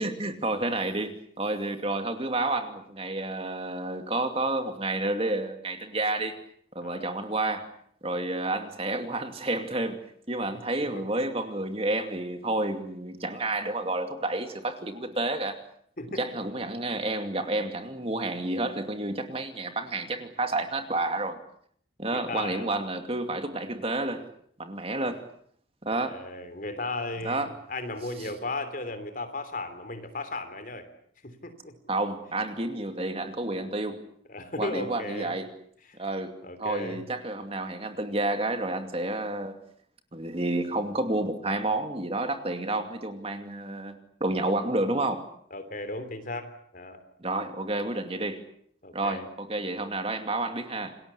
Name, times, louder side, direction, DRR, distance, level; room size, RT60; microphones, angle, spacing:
voice 1, 0.0-6.4 6.7-7.7 8.0-10.0 10.3-15.6 16.2-21.4 22.0-24.2 24.6-25.2 25.8-26.2 27.2-27.5 31.9-34.0 34.6-35.5 35.9-39.5 40.1-45.3 47.2-48.4 48.9-51.0, right 2 dB, 30° right, 7 dB, 2.5 m, -30 dB
voice 2, 16.0-16.3 22.1-22.7 25.9-30.9 31.2-31.7 34.3-35.3 35.8-36.0 36.4-37.0 45.5-47.0 48.8-49.3, left 2 dB, 45° left, 10 dB, 3.2 m, -36 dB
28.0 x 20.0 x 8.4 m, 0.65 s
head